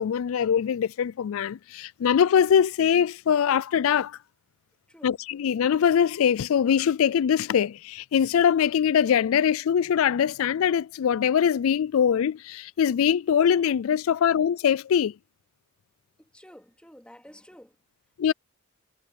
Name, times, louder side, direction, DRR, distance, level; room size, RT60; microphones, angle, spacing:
voice 1, 0.0-4.2 5.0-15.1 18.2-18.3, left 8 dB, 70° left, 0.3 m, -22 dB
voice 2, 16.2-17.7, equal, 5° left, 2.5 m, -50 dB
head